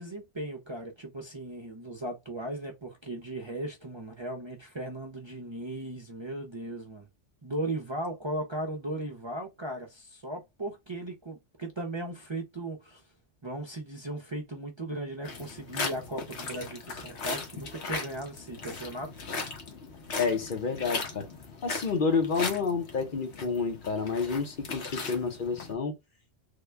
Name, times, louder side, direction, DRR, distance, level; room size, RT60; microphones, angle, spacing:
voice 1, 0.0-7.1 7.4-13.1 13.4-19.3, right 1 dB, 30° right, 0.6 m, -37 dB
sound 1, 15.2-25.7, left 4 dB, 75° left, 1.3 m, -38 dB
voice 2, 20.2-21.3 21.6-25.9, left 5 dB, 50° left, 0.9 m, -29 dB
3.7 x 2.2 x 3.3 m
omnidirectional pair, 1.1 m